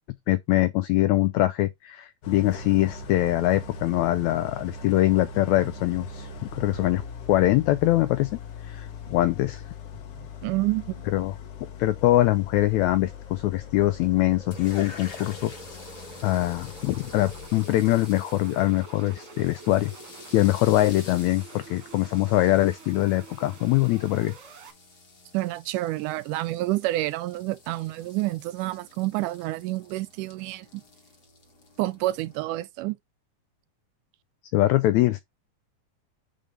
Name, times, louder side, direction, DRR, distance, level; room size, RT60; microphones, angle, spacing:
voice 1, 0.3-7.0 7.3-8.3 8.6-9.6 11.1-11.3 11.8-15.5 16.2-19.9 20.3-24.4 34.5-35.2, left 16 dB, 85° left, 1.6 m, -23 dB
Idling, 2.2-17.5, left 4 dB, 65° left, 1.5 m, -41 dB
sound 1, 9.9-24.7, right 4 dB, 50° right, 1.9 m, -48 dB
voice 2, 10.4-11.0 25.3-30.8 31.8-33.0, right 18 dB, 80° right, 2.0 m, -28 dB
sound 2, 14.5-32.4, left 3 dB, 45° left, 1.4 m, -49 dB
5.3 x 5.1 x 5.0 m
omnidirectional pair, 3.8 m